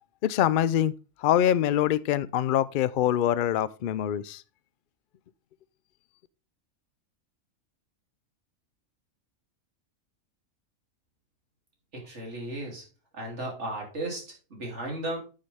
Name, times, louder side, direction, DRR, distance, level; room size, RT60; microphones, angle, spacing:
voice 1, 0.2-0.9 1.2-4.4, left 11 dB, 85° left, 0.4 m, -24 dB
voice 2, 11.9-12.8 13.1-15.2, right 1 dB, 55° right, 3.3 m, -35 dB
9.6 x 6.5 x 3.5 m
omnidirectional pair, 1.5 m